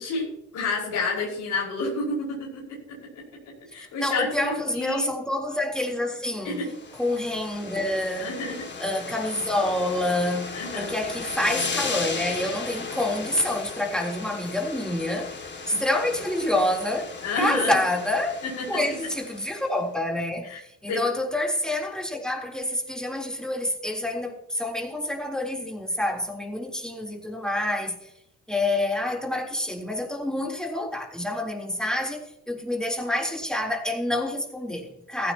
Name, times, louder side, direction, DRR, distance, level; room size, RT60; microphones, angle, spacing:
voice 1, 0.0-3.2 3.7-5.1 6.4-6.7 8.2-8.5 10.5-10.9 12.4-12.5 15.7-15.8 17.2-17.7 18.4-18.7 20.4-20.6 20.9-21.0, left 3 dB, 85° left, 5.5 m, -30 dB
voice 2, 3.8-6.7 7.0-8.3 8.8-15.3 15.7-18.4 18.7-28.1 28.5-35.3, left 1 dB, ahead, 3.7 m, -27 dB
sound 1, 6.5-19.7, left 4 dB, 35° left, 2.4 m, -36 dB
15.5 x 15.5 x 3.0 m
cardioid pair, 90°, 30 cm